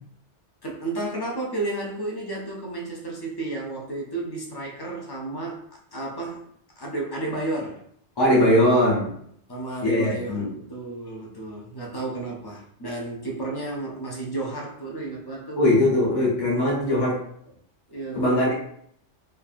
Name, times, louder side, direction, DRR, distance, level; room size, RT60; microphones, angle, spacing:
voice 1, 0.6-5.7 5.9-6.4 6.8-7.8 9.5-15.6 17.9-18.5, right 2 dB, 40° left, -2 dB, 0.3 m, -32 dB
voice 2, 8.2-9.1 9.8-10.5 15.6-17.2 18.1-18.5, left 1 dB, 25° left, -5 dB, 0.8 m, -20 dB
3.2 x 2.4 x 2.5 m, 0.66 s
omnidirectional pair, 1.2 m